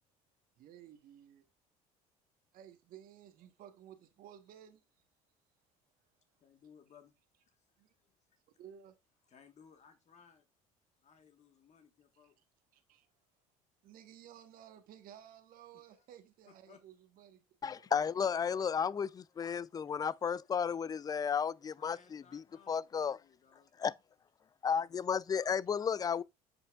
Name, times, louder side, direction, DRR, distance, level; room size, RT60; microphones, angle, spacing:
voice 1, 0.6-1.5 2.5-4.8 7.8-7.9 8.6-8.9 12.2-12.4 12.7-13.1 13.8-17.4 17.7-17.9, right 10 dB, 60° right, 1.1 m, -55 dB
voice 2, 6.4-7.1 7.4-7.6 8.0-8.4 9.3-10.5 11.0-12.4 16.7-16.8 21.8-23.7, left 7 dB, 45° left, 1.3 m, -61 dB
voice 3, 17.6-23.2 23.8-23.9 24.6-26.2, left 7 dB, 25° left, 0.3 m, -33 dB
8.0 x 5.5 x 2.3 m
supercardioid pair, 80°, 17 cm